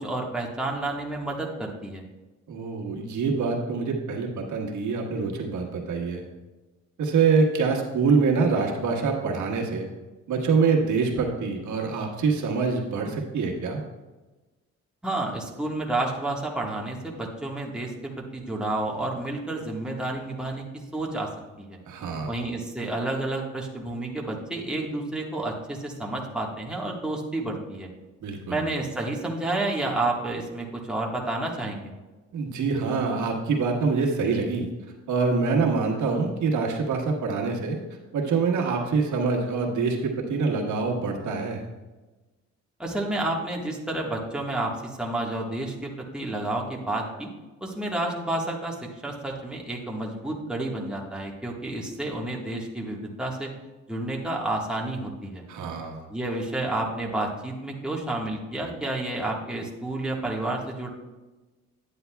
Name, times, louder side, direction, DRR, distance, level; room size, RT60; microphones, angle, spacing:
voice 1, 0.0-2.0 15.0-20.6 20.9-21.3 21.6-21.8 22.2-27.9 28.5-31.9 42.8-44.7 45.0-47.3 47.6-53.5 53.9-55.4 56.1-60.9, right 2 dB, 5° right, -2 dB, 1.5 m, -30 dB
voice 2, 2.5-6.2 7.0-9.9 10.3-13.8 21.9-22.4 28.2-28.7 32.3-34.7 35.1-37.8 38.1-41.6 55.5-56.0, right 4 dB, 75° right, 0 dB, 1.5 m, -25 dB
9.9 x 9.2 x 2.3 m, 1.2 s
cardioid pair, 90°, 30 cm